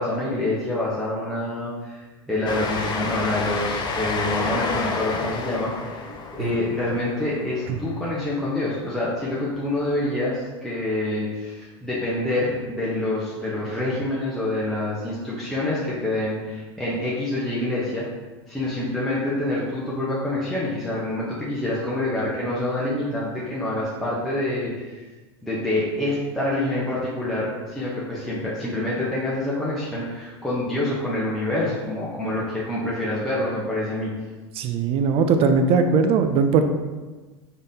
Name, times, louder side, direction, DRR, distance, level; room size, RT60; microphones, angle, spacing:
voice 1, 0.0-6.0 6.3-18.0 18.5-25.0 25.4-34.1, left 1 dB, ahead, -8 dB, 0.8 m, -26 dB
Train, 2.5-8.6, left 4 dB, 30° left, 0.5 m, -30 dB
voice 2, 34.6-36.6, right 5 dB, 40° right, 7 dB, 0.4 m, -19 dB
3.9 x 3.4 x 2.7 m, 1.3 s
hypercardioid pair, 85°, 15 cm